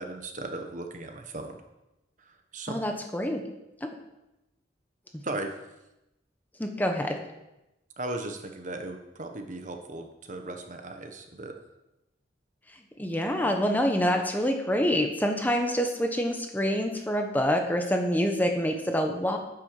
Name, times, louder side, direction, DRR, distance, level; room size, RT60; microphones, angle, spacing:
voice 1, 0.0-1.6 2.2-2.8 5.2-5.5 8.0-11.5, right 2 dB, 45° right, 5 dB, 1.2 m, -37 dB
voice 2, 2.7-3.4 3.8-3.9 6.6-7.2 12.7-19.4, equal, 10° left, 4 dB, 1.1 m, -26 dB
9.3 x 8.3 x 6.7 m, 0.94 s
head